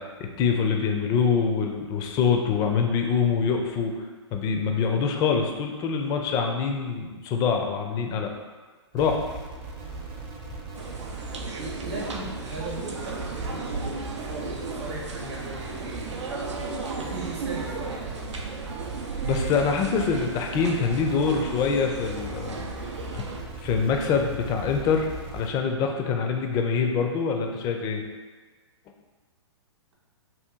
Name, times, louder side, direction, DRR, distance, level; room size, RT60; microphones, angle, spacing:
voice 1, 0.0-3.9 4.3-8.3 8.9-9.2 19.2-22.7 23.1-23.2 23.6-28.0, left 5 dB, 25° left, 3 dB, 0.4 m, -25 dB
sound 1, 8.9-25.5, right 3 dB, 35° right, 0.6 m, -38 dB
sound 2, 10.7-23.4, right 4 dB, 85° right, 0.5 m, -35 dB
voice 2, 11.6-16.1 16.9-18.2, right 2 dB, 65° right, -3 dB, 0.8 m, -38 dB
2.8 x 2.3 x 3.5 m, 1.3 s
hypercardioid pair, 115°, 15 cm